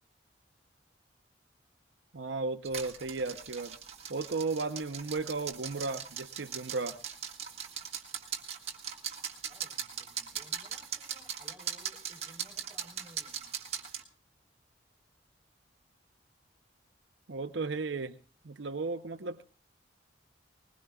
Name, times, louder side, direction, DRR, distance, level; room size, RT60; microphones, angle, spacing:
voice 1, 2.1-3.8 4.1-7.0 17.3-18.2 18.4-19.4, right 3 dB, 75° right, 8 dB, 0.7 m, -35 dB
sound 1, 2.6-14.0, right 8 dB, 35° right, 1.5 m, -40 dB
voice 2, 9.5-13.5, equal, 15° right, 2 dB, 3.7 m, -58 dB
20.5 x 20.5 x 2.3 m, 0.37 s
head